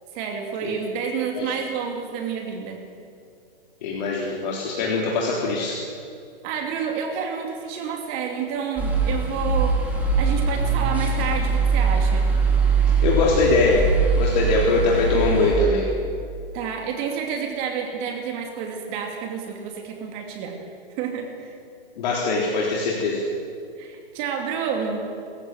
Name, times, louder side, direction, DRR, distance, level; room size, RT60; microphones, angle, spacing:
voice 1, 0.1-2.8 6.4-9.8 10.2-12.3 16.5-20.6 21.0-21.3 23.8-25.1, right 6 dB, 30° right, 3 dB, 2.6 m, -29 dB
voice 2, 3.8-5.8 13.0-13.8 14.2-15.9 22.0-23.2, left 3 dB, 50° left, -2 dB, 3.7 m, -22 dB
sound 1, 8.8-15.5, right 4 dB, 5° right, 3.0 m, -22 dB
29.5 x 15.0 x 7.8 m, 2.5 s
hypercardioid pair, 150°, 29 cm